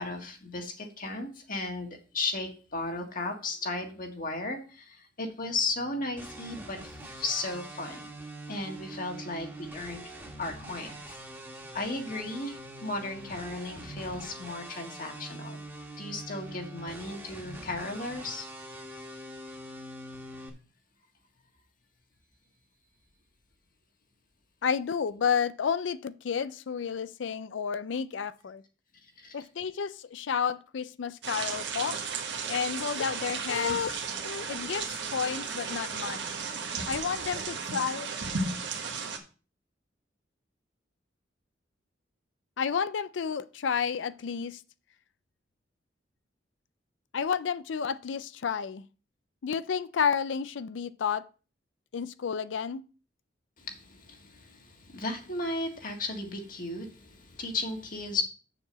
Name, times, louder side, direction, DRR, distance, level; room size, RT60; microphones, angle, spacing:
voice 1, 0.0-8.1 8.5-10.0 10.4-11.2 11.7-15.6 16.0-18.5 29.2-29.4 53.6-58.2, left 3 dB, 50° left, 1.7 m, -35 dB
sound 1, 6.2-20.5, right 1 dB, 15° right, 1.6 m, -44 dB
voice 2, 24.6-28.6 29.3-32.0 32.5-36.4 36.9-38.1 42.6-44.6 47.1-48.8 49.4-51.2 51.9-52.8, left 6 dB, 85° left, 0.4 m, -31 dB
sound 2, 31.2-39.2, right 5 dB, 70° right, 1.4 m, -34 dB
6.9 x 4.7 x 6.8 m
head